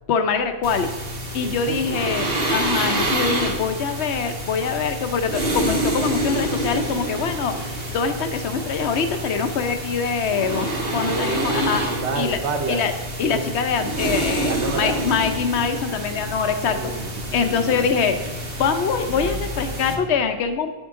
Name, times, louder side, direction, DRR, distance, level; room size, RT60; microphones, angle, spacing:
voice 1, 0.1-0.9 1.3-2.3 2.5-11.8 12.2-12.4 12.7-12.9 13.2-16.8 17.3-18.2 18.6-20.7, left 6 dB, 75° left, 7 dB, 1.1 m, -24 dB
sound 1, 0.6-19.9, right 1 dB, 60° right, 1.7 m, -27 dB
voice 2, 1.3-2.1 11.0-12.9 13.2-13.5 14.4-15.1 16.6-18.3, right 4 dB, 80° right, 6 dB, 1.2 m, -30 dB
sound 2, 4.9-14.0, right 1 dB, 10° right, 1.3 m, -46 dB
10.0 x 8.9 x 3.7 m, 1.3 s
omnidirectional pair, 1.1 m